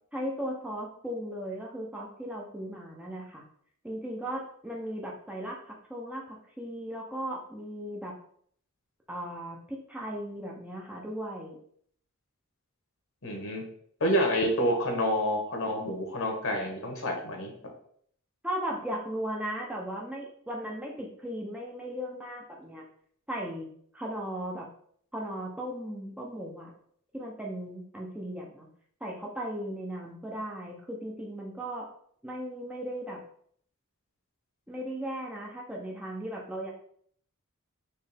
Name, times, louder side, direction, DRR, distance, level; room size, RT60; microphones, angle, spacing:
voice 1, 0.1-3.4 3.8-8.1 9.1-11.6 18.4-22.8 23.3-23.7 23.9-24.7 25.1-26.7 27.1-28.7 29.0-31.9 32.2-33.2 34.7-36.7, equal, 5° right, -2 dB, 0.6 m, -37 dB
voice 2, 13.2-13.6 14.0-17.5, equal, 65° left, 2 dB, 1.1 m, -28 dB
4.3 x 3.1 x 3.4 m, 0.63 s
head